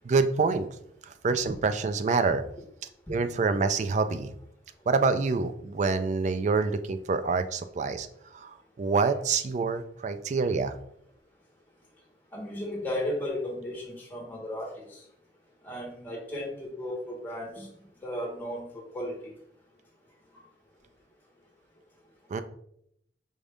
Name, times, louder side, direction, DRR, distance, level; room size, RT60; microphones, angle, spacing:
voice 1, 0.0-0.7 1.0-2.4 3.1-4.3 4.9-10.7 22.3-22.4, right 4 dB, 40° right, 10 dB, 0.3 m, -26 dB
voice 2, 12.3-15.0 15.6-17.7 18.0-19.3, left 1 dB, 10° left, -2 dB, 1.3 m, -35 dB
4.9 x 2.6 x 3.4 m, 0.71 s
head